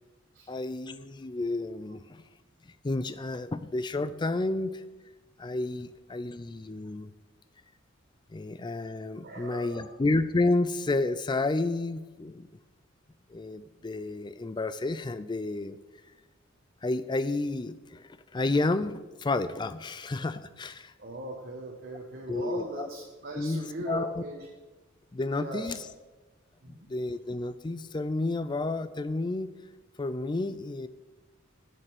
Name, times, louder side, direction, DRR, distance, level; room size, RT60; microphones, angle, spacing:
voice 1, 0.5-2.2 2.8-4.7 5.4-7.1 8.3-12.5 13.3-15.8 16.8-20.9 22.3-22.9 23.4-24.2 25.1-25.8 26.7-29.5 30.0-30.9, left 2 dB, 20° left, 13 dB, 0.4 m, -31 dB
voice 2, 9.2-9.9 21.0-24.5 25.4-25.8 26.6-26.9, right 1 dB, 50° right, -1 dB, 1.1 m, -39 dB
7.4 x 6.6 x 7.9 m, 1.2 s
head